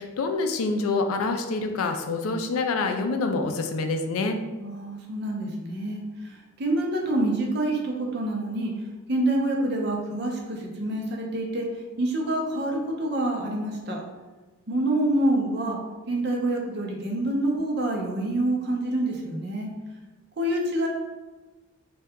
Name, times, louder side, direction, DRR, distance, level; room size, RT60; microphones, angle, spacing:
voice 1, 0.0-4.4, left 3 dB, 90° left, 5 dB, 0.4 m, -26 dB
voice 2, 4.6-8.7 9.1-11.7 12.0-14.0 14.7-15.8 16.1-19.7 20.4-20.9, right 1 dB, 50° right, 0 dB, 0.5 m, -27 dB
2.7 x 2.3 x 3.4 m, 1.2 s
head